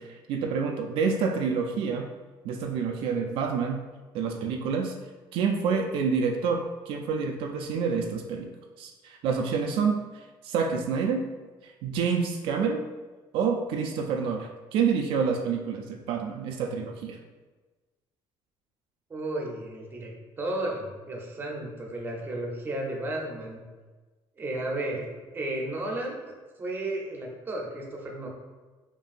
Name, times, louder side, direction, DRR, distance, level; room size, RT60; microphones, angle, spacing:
voice 1, 0.0-2.1 2.4-3.8 4.1-5.0 5.3-8.5 8.8-10.0 10.4-11.3 11.6-12.9 13.3-17.2, right 5 dB, 75° right, 3 dB, 0.4 m, -28 dB
voice 2, 19.1-20.1 20.4-23.6 24.4-25.1 25.3-26.3 26.6-28.3, right 1 dB, 20° right, 0 dB, 0.7 m, -33 dB
5.1 x 2.6 x 2.5 m, 1.3 s
cardioid pair, 150°, 9 cm